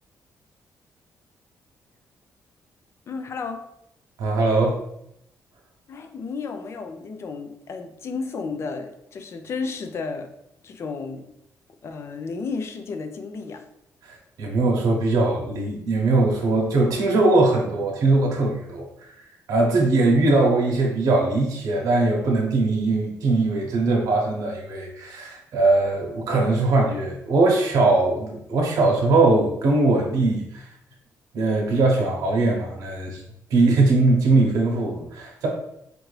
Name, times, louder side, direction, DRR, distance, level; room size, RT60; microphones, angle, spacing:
voice 1, 3.1-3.6 5.9-10.3 10.6-11.3 11.8-13.6, left 4 dB, 50° left, 6 dB, 0.5 m, -32 dB
voice 2, 4.2-4.8 14.0-18.9 19.5-30.7 31.3-33.2 33.5-35.5, right 2 dB, 80° right, -1 dB, 0.9 m, -21 dB
4.5 x 2.6 x 3.2 m, 0.77 s
cardioid pair, 125°, 6 cm